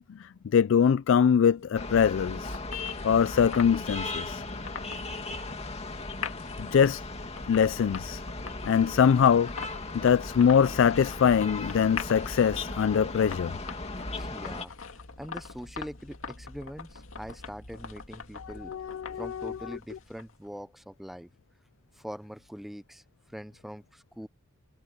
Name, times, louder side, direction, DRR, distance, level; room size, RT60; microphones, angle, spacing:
voice 1, 0.2-2.6 3.0-4.4 6.6-7.0 7.5-8.2 8.7-9.5 9.9-13.5 18.7-19.6, left 7 dB, 65° left, 0.3 m, -23 dB
sound 1, 1.5-20.5, left 5 dB, 85° left, 2.1 m, -44 dB
sound 2, 1.7-14.6, left 3 dB, 30° left, 2.3 m, -37 dB
voice 2, 14.1-18.7 19.2-21.3 21.9-23.0 23.3-24.3, equal, ahead, 0.6 m, -43 dB
head